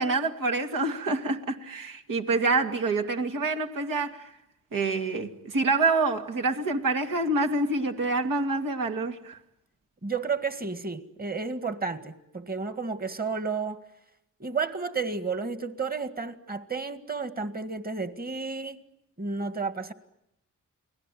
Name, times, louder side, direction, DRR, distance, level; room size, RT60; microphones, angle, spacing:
voice 1, 0.0-4.3 4.7-9.4, right 3 dB, 85° right, 2.4 m, -27 dB
voice 2, 10.0-13.8 14.4-18.8 19.2-19.9, right 4 dB, 30° right, 1.9 m, -32 dB
30.0 x 20.0 x 9.2 m
cardioid pair, 90°, 32 cm